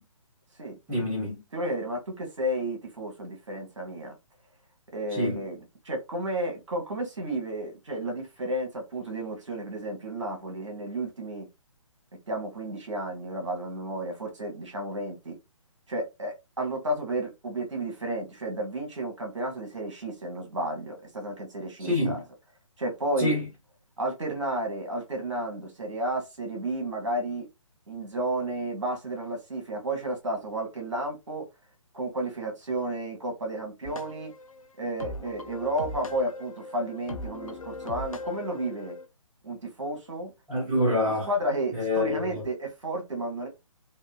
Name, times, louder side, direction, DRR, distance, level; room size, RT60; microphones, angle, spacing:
voice 1, 0.9-1.4 5.1-5.4 21.8-22.2 23.2-23.5 40.5-41.3 41.7-42.4, left 1 dB, 10° right, 1.0 m, -26 dB
voice 2, 1.5-4.2 4.9-5.6 5.8-11.5 12.3-15.4 15.9-22.2 22.8-23.3 24.0-27.4 27.9-31.4 31.9-34.3 34.8-39.0 39.4-40.3 41.3-43.5, right 1 dB, 60° right, 1.1 m, -32 dB
sound 1, 33.8-39.0, left 2 dB, 75° left, 0.4 m, -40 dB
2.9 x 2.2 x 2.3 m
figure-of-eight pair, 135°, 18 cm